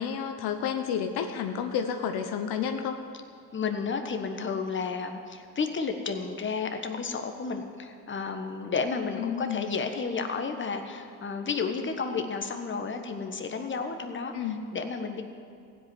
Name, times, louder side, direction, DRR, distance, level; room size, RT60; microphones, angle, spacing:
voice 1, 0.0-3.0 9.2-9.7 14.3-14.6, left 7 dB, 75° left, 6 dB, 1.0 m, -30 dB
voice 2, 3.5-15.2, left 5 dB, 30° left, 5 dB, 1.3 m, -32 dB
15.5 x 5.4 x 9.7 m, 2.3 s
supercardioid pair, 90°, 39 cm